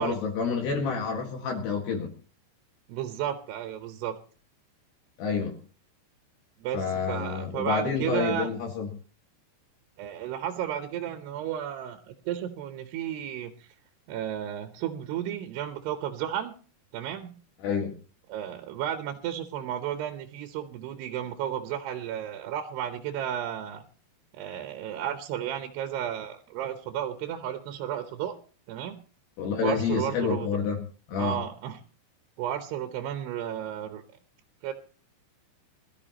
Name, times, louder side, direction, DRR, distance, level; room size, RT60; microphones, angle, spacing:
voice 1, 0.0-2.1 5.2-5.6 6.7-8.9 17.6-17.9 29.4-30.8 31.1-31.4, left 5 dB, 70° left, 0 dB, 3.9 m, -28 dB
voice 2, 2.9-4.2 6.6-8.5 10.0-13.7 14.1-16.5 16.9-17.3 18.3-23.8 24.3-28.4 28.7-29.0 29.6-30.5 31.2-31.8 32.4-34.0 34.6-34.7, right 10 dB, 75° right, 7 dB, 3.0 m, -33 dB
22.0 x 13.5 x 3.0 m, 0.38 s
omnidirectional pair, 4.9 m